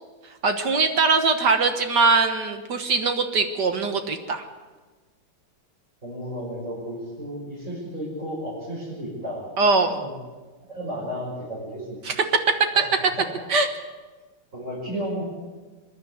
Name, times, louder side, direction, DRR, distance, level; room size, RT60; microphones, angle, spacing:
voice 1, 0.4-4.4 9.6-9.9 12.1-12.2 13.5-13.7, right 4 dB, 60° right, 7 dB, 1.8 m, -21 dB
voice 2, 6.0-9.4 9.9-10.2 10.7-12.0 12.7-13.3 14.5-15.2, equal, 35° right, -7 dB, 6.0 m, -33 dB
25.5 x 11.0 x 9.4 m, 1.3 s
omnidirectional pair, 2.2 m